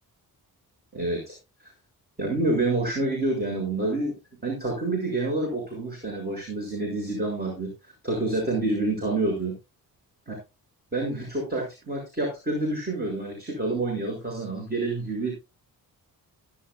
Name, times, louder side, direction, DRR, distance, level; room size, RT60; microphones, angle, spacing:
voice 1, 0.9-1.4 2.2-4.1 4.4-7.7 8.0-9.5 10.3-10.4 10.9-15.3, right 2 dB, 25° right, 0 dB, 6.7 m, -28 dB
16.5 x 12.0 x 2.4 m, 0.27 s
cardioid pair, 105°, 37 cm